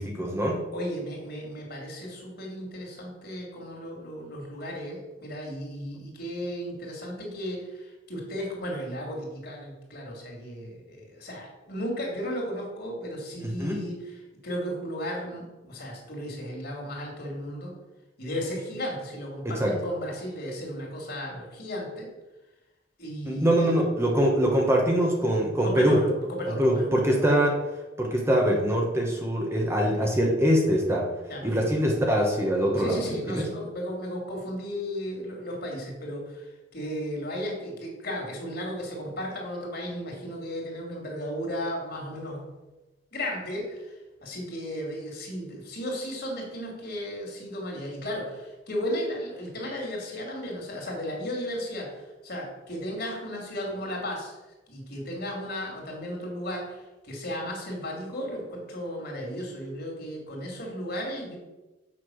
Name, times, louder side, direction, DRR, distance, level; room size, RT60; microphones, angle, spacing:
voice 1, 0.0-0.6 13.4-13.8 19.4-19.8 23.3-26.0 26.6-27.6 28.0-31.1 31.4-33.5, equal, 15° right, 0 dB, 1.2 m, -23 dB
voice 2, 0.7-14.1 14.4-17.7 18.2-22.1 23.0-23.7 25.6-27.3 31.3-31.5 32.8-36.5 36.7-42.4 43.1-43.9 44.2-51.9 52.2-54.4 54.7-61.4, equal, 55° left, -1 dB, 2.9 m, -34 dB
7.6 x 6.0 x 6.4 m, 1.1 s
head